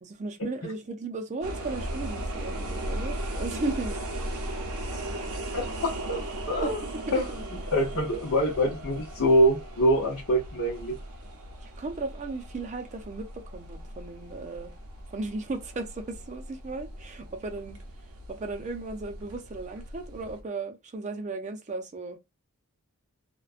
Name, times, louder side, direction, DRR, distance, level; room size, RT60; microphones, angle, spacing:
voice 1, 0.0-4.3 5.1-5.2 6.6-6.7 7.1-7.2 11.6-14.7 15.1-17.8 18.3-22.2, right 3 dB, 35° right, 0.4 m, -36 dB
sound 1, 1.4-20.4, right 1 dB, 90° right, 0.6 m, -37 dB
voice 2, 5.5-6.2 6.5-6.8 7.1-7.3 7.7-10.9, equal, 70° left, 0.8 m, -24 dB
2.4 x 2.2 x 2.4 m
head